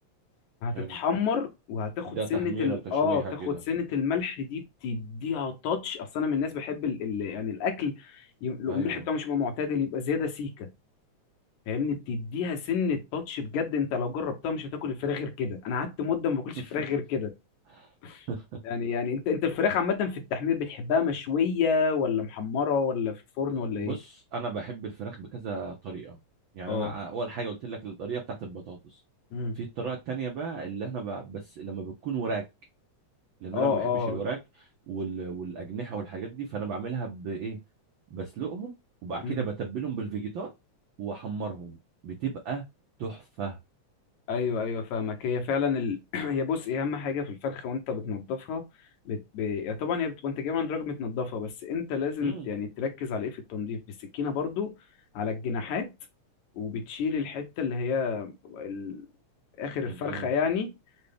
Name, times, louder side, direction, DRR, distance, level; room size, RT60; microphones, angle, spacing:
voice 1, 0.6-10.7 11.7-17.3 18.0-18.3 18.6-24.0 26.7-26.9 29.3-29.6 33.5-34.3 39.2-39.4 44.3-48.6 49.1-53.8 54.1-54.7 55.1-55.9 56.6-59.1 59.6-60.7, left 6 dB, 80° left, 2.3 m, -29 dB
voice 2, 2.1-3.6 8.7-9.1 17.7-17.9 18.3-18.4 23.8-26.2 26.5-29.0 29.5-32.4 33.4-34.4 34.9-37.6 38.1-38.7 39.0-40.5 41.0-41.8 42.0-42.6 43.0-43.6 52.2-52.5 59.9-60.3, right 5 dB, 80° right, 1.1 m, -34 dB
6.5 x 2.2 x 3.4 m
omnidirectional pair, 3.3 m